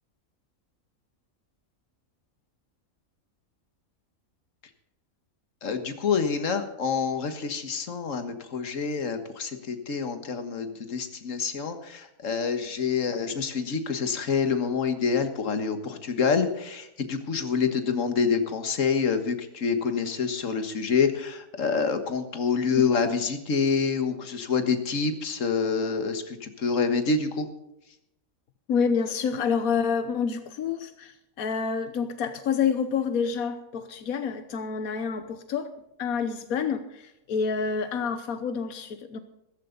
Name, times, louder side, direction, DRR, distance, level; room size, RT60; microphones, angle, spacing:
voice 1, 5.6-27.5, left 5 dB, 65° left, 8 dB, 1.8 m, -27 dB
voice 2, 28.7-35.7 36.0-39.2, left 6 dB, 90° left, 9 dB, 1.4 m, -28 dB
15.0 x 14.0 x 4.0 m, 0.86 s
omnidirectional pair, 1.5 m